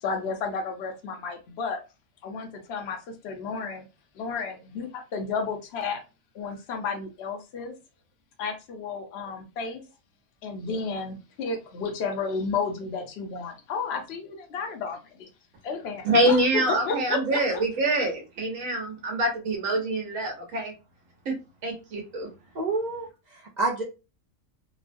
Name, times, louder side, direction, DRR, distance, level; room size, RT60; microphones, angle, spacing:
voice 1, 0.0-1.8 2.2-3.0 3.2-3.8 4.2-6.0 6.3-7.7 8.4-9.8 10.4-15.3 15.6-17.6, left 5 dB, 60° left, 3 dB, 0.8 m, -32 dB
voice 2, 16.0-20.7 21.3-21.4 21.6-22.3, right 1 dB, 85° right, 2 dB, 1.2 m, -25 dB
voice 3, 22.5-23.8, right 3 dB, 65° right, 0 dB, 0.4 m, -29 dB
3.0 x 2.1 x 2.5 m, 0.29 s
omnidirectional pair, 1.3 m